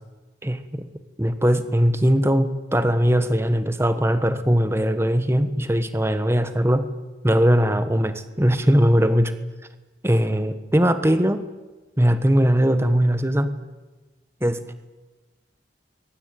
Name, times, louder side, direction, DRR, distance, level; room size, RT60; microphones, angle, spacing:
voice 1, 0.4-0.9 1.2-6.9 7.2-9.3 10.0-11.4 12.0-13.5 14.4-14.7, equal, 15° right, 10 dB, 1.3 m, -20 dB
27.0 x 23.0 x 9.2 m, 1.2 s
head